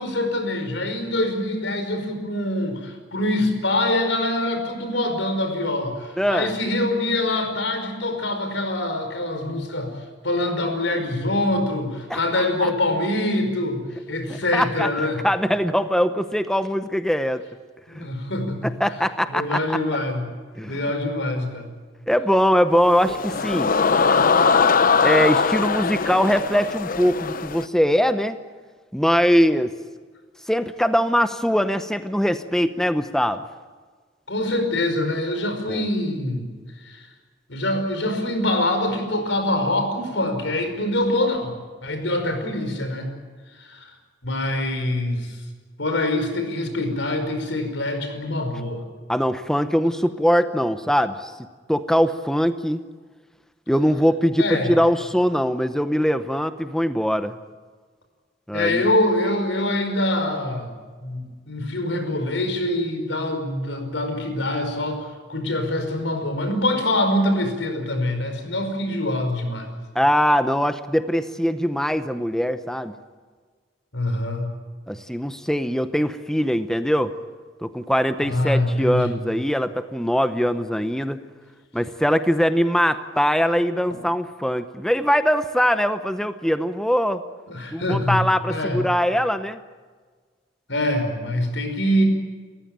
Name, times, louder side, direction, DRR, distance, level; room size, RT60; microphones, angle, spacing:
voice 1, 0.0-9.9 10.2-15.2 17.9-18.7 19.3-20.2 20.6-21.7 34.3-36.5 36.8-37.1 37.5-41.5 41.8-43.1 43.6-43.9 44.2-45.4 45.8-48.8 54.4-54.7 58.5-60.7 61.0-69.7 73.9-74.5 78.2-79.2 87.5-88.2 88.5-88.8 90.7-92.1, left 1 dB, 80° left, 6 dB, 5.2 m, -24 dB
voice 2, 6.2-6.5 12.1-12.7 14.3-17.4 18.0-18.1 18.6-19.8 20.6-20.8 22.1-23.7 25.0-28.4 28.9-29.8 30.5-33.4 35.7-35.9 49.1-51.3 51.7-52.8 53.7-57.3 58.5-58.9 69.9-72.9 74.9-77.1 77.6-81.2 81.7-87.2 87.7-89.6, equal, 5° left, 10 dB, 0.8 m, -22 dB
sound 1, 22.8-27.7, left 5 dB, 50° left, 0.8 m, -21 dB
30.0 x 15.0 x 9.0 m, 1.5 s
head